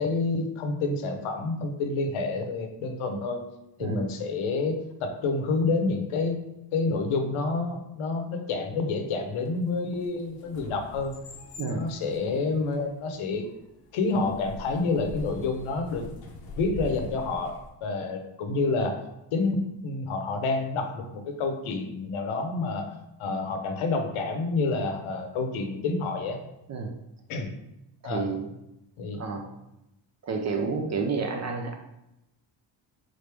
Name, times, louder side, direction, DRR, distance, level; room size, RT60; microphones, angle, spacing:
voice 1, 0.0-3.4 3.8-6.4 6.7-11.2 11.7-13.5 13.9-16.1 16.6-19.0 19.3-22.9 23.2-26.4 27.3-27.5 28.0-28.2 29.0-29.2, left 3 dB, 80° left, 5 dB, 0.8 m, -28 dB
sound 1, 9.1-17.7, left 1 dB, 50° left, 0.6 m, -44 dB
voice 2, 28.0-28.5 29.2-29.5 30.2-31.7, right 4 dB, 40° right, 3 dB, 0.4 m, -30 dB
3.8 x 3.2 x 3.3 m, 0.89 s
cardioid pair, 170°, 48 cm